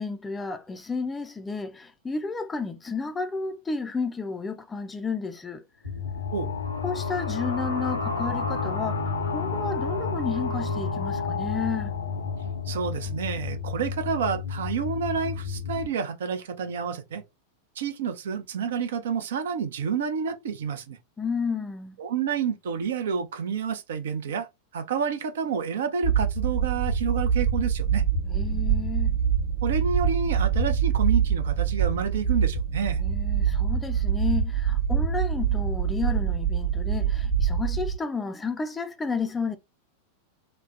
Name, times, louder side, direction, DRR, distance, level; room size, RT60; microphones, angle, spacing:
voice 1, 0.0-5.6 6.8-11.9 21.2-22.0 28.3-29.2 33.0-39.6, left 4 dB, 15° left, 0.4 m, -32 dB
sound 1, 5.8-15.9, left 6 dB, 85° right, 1.0 m, -33 dB
sound 2, 6.0-13.4, left 3 dB, 70° left, 0.5 m, -32 dB
voice 2, 12.7-17.2 17.8-21.0 22.0-24.5 24.7-28.0 29.6-33.0, right 6 dB, 60° right, 0.5 m, -29 dB
sound 3, 26.0-38.0, right 7 dB, 30° right, 1.1 m, -25 dB
3.1 x 2.0 x 2.6 m
figure-of-eight pair, 90°, 0 cm